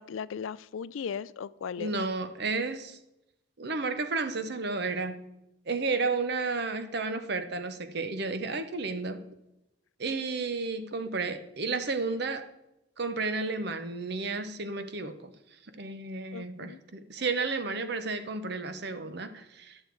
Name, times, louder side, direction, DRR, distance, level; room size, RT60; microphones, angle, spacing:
voice 1, 0.0-1.9 16.3-16.8, left 7 dB, 85° left, 18 dB, 0.4 m, -37 dB
voice 2, 1.8-3.0 3.6-5.2 5.7-9.2 10.0-12.4 13.0-15.3 15.7-19.8, right 3 dB, 55° right, 10 dB, 0.9 m, -32 dB
11.5 x 6.6 x 4.6 m, 0.87 s
head